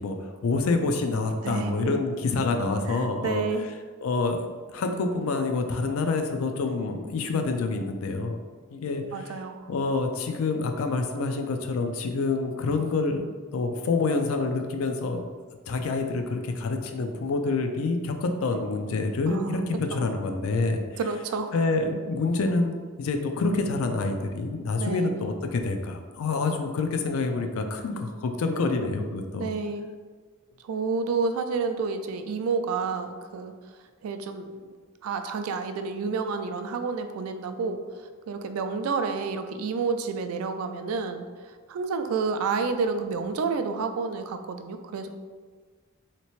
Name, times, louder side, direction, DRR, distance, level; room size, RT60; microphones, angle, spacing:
voice 1, 0.0-3.4 4.0-8.4 8.7-13.3 13.5-15.2 15.7-20.8 21.5-29.5, left 3 dB, 75° left, 6 dB, 0.4 m, -27 dB
voice 2, 1.4-2.0 2.9-3.7 9.1-9.7 19.3-20.1 21.0-21.5 24.8-25.1 29.4-29.9 30.6-33.5 34.0-34.6 35.0-37.8 38.3-45.1, right 4 dB, 80° right, 8 dB, 0.3 m, -30 dB
3.2 x 2.9 x 3.0 m, 1.5 s
head